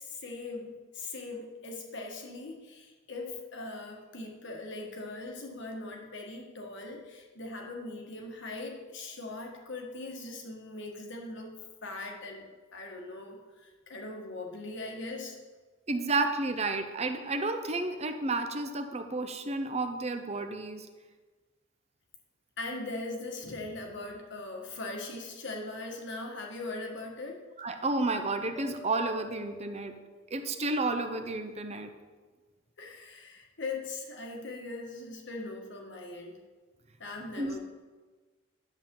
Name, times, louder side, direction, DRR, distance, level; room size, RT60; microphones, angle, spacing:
voice 1, 0.0-11.5 11.8-15.4 22.6-27.4 32.8-36.4 37.0-37.6, left 2 dB, 60° left, 1 dB, 1.6 m, -40 dB
voice 2, 15.9-20.9 27.6-29.9 30.3-31.9 37.4-37.6, right 2 dB, 30° right, 7 dB, 0.7 m, -31 dB
Mallet percussion, 28.6-30.6, right 1 dB, ahead, 1.0 m, -50 dB
11.0 x 7.3 x 3.8 m, 1.3 s
head